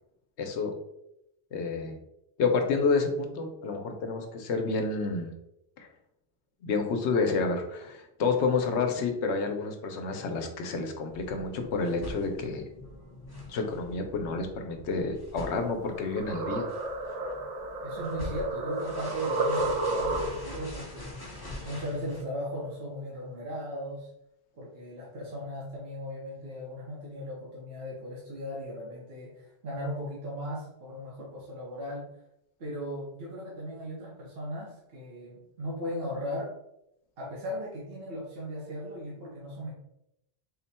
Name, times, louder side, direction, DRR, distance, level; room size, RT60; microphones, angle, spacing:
voice 1, 0.4-0.7 1.5-2.0 2.4-5.3 5.8-5.9 6.6-12.6 13.5-16.7, left 4 dB, 85° left, 5 dB, 1.0 m, -29 dB
sound 1, 11.1-22.2, left 1 dB, 25° left, 0.8 m, -44 dB
sound 2, 15.6-20.6, right 2 dB, 85° right, 1.0 m, -32 dB
voice 2, 17.8-21.1 21.6-24.1 24.6-32.1 32.6-36.5 37.2-39.7, equal, 60° right, -5 dB, 1.1 m, -37 dB
4.2 x 2.2 x 4.1 m, 0.83 s
omnidirectional pair, 1.1 m